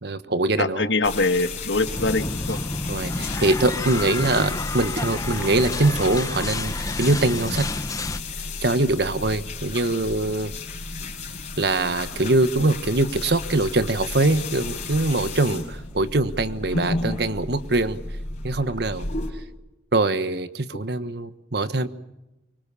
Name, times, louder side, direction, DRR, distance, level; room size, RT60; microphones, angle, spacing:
voice 1, 0.0-0.9 2.9-7.7 8.6-10.5 11.6-18.0 18.4-19.1 19.9-21.9, right 2 dB, 65° right, 12 dB, 1.3 m, -23 dB
voice 2, 0.6-2.6, left 3 dB, 80° left, 9 dB, 1.6 m, -23 dB
sound 1, 1.0-19.3, left 3 dB, 40° left, 5.2 m, -33 dB
sound 2, 1.9-8.2, left 2 dB, 20° left, 1.0 m, -30 dB
25.0 x 24.5 x 6.9 m, 0.97 s
head